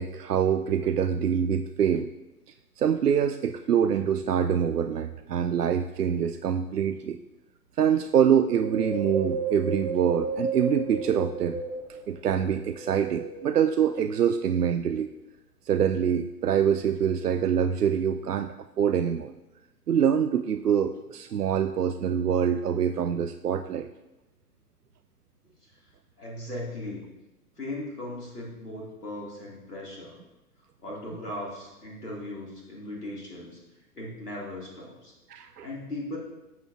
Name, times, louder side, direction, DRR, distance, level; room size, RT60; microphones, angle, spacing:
voice 1, 0.0-2.1 2.8-7.2 7.8-11.6 11.9-15.1 15.7-19.3 19.9-23.9 35.3-35.7, right 8 dB, 75° right, 10 dB, 0.6 m, -25 dB
Wind, 8.5-12.1 12.6-13.8 14.4-14.5, right 3 dB, 30° right, 1.5 m, -33 dB
voice 2, 26.2-27.0 27.6-30.2 30.8-33.6 33.9-35.1 35.6-36.2, left 1 dB, 75° left, -4 dB, 3.2 m, -38 dB
13.0 x 7.8 x 2.9 m, 1.0 s
figure-of-eight pair, 120°, 47 cm